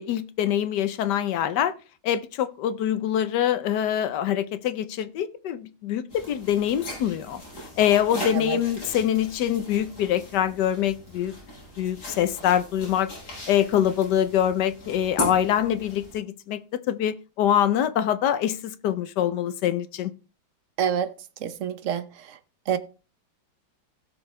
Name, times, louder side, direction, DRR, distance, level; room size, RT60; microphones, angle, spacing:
voice 1, 0.0-1.7 2.0-7.4 7.8-11.3 11.8-13.1 13.5-20.1, left 10 dB, 65° left, 1.2 m, -24 dB
sound 1, 6.1-16.1, equal, 50° left, 6.1 m, -38 dB
voice 2, 20.8-21.1 21.4-22.4 22.7-22.8, right 8 dB, 60° right, 0.8 m, -27 dB
17.0 x 6.2 x 3.2 m
omnidirectional pair, 2.2 m